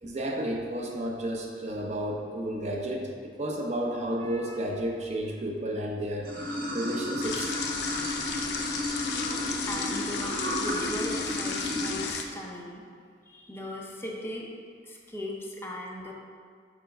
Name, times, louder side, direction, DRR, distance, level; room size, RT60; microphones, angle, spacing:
voice 1, 0.0-6.3 6.7-7.5, right 1 dB, 40° right, 0 dB, 0.6 m, -32 dB
Water / Sink (filling or washing), 6.2-11.9, left 1 dB, 55° right, 1.1 m, -32 dB
sound 1, 7.2-12.2, left 6 dB, 65° left, 0.5 m, -34 dB
voice 2, 9.6-12.8 13.3-14.5 14.8-16.1, left 1 dB, 15° left, -2 dB, 0.6 m, -38 dB
4.6 x 4.4 x 5.2 m, 2.1 s
head